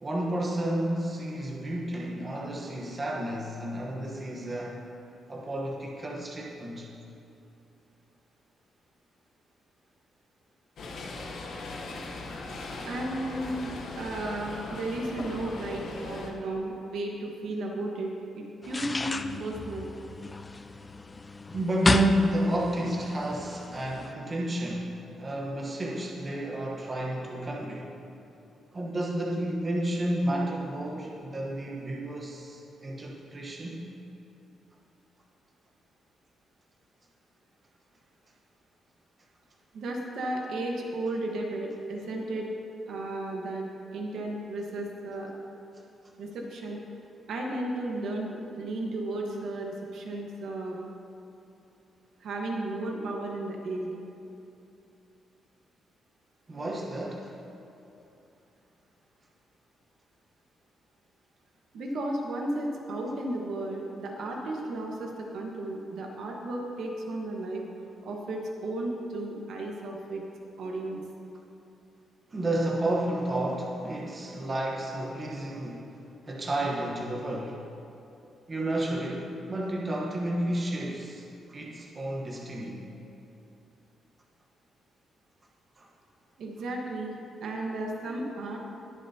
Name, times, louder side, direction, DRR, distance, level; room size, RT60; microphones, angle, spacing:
voice 1, 0.0-4.7 5.3-6.9 21.5-27.9 28.7-33.9 56.5-57.3 72.3-76.0 76.2-77.6 78.5-82.8 85.8-85.9, right 1 dB, 25° right, -2 dB, 1.1 m, -31 dB
sound 1, 10.8-16.3, left 2 dB, 55° left, 1.0 m, -39 dB
voice 2, 12.8-18.1 18.3-19.9 39.7-42.5 42.9-43.7 43.9-45.3 46.2-46.8 47.3-50.8 52.2-53.9 61.7-67.6 68.0-70.2 70.6-71.0 86.4-87.1 87.4-88.6, right 1 dB, 65° right, 0 dB, 1.3 m, -34 dB
sound 2, 18.6-24.1, left 3 dB, 15° left, 0.3 m, -33 dB
20.5 x 7.2 x 2.8 m, 2.8 s
cardioid pair, 175°, 0 cm